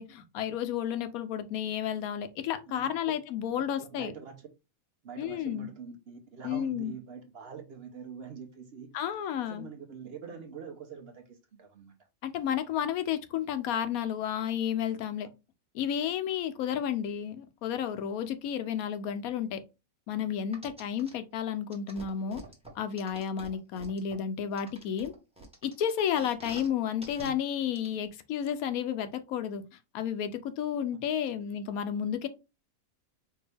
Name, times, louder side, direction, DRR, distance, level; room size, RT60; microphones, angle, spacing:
voice 1, 0.0-4.1 5.2-5.7 6.4-6.9 8.9-9.7 12.2-15.3 15.7-19.6 20.1-22.4 22.8-25.1 25.6-29.6 29.9-32.3, left 9 dB, 80° left, 1.1 m, -32 dB
voice 2, 2.7-3.2 3.5-4.5 5.0-9.0 9.4-12.0 31.4-31.5, right 6 dB, 55° right, 0.8 m, -45 dB
sound 1, 20.5-21.1 21.7-24.1 24.6-26.7 27.0-27.3 27.7-27.9, right 2 dB, 5° right, 0.9 m, -46 dB
4.5 x 2.7 x 3.3 m
omnidirectional pair, 1.5 m